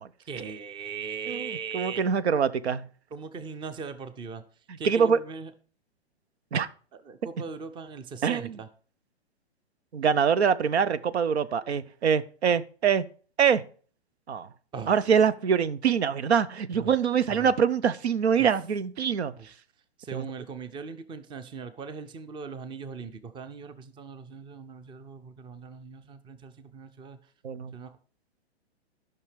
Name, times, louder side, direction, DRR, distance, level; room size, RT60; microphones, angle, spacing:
voice 1, 0.3-2.0 3.1-4.4 4.8-5.5 7.1-8.7 14.7-14.9 16.7-16.9 17.3-17.5 18.4-18.5 19.4-19.5 20.0-27.2 27.7-28.0, right 5 dB, 15° right, 0.6 m, -39 dB
voice 2, 1.3-2.8 4.7-5.2 6.5-6.7 8.2-8.6 9.9-13.0 13.4-13.6 14.3-14.5 14.9-19.3 20.1-20.3 27.4-27.7, right 7 dB, 80° right, 0.7 m, -24 dB
11.0 x 5.9 x 5.0 m
hypercardioid pair, 120°, 32 cm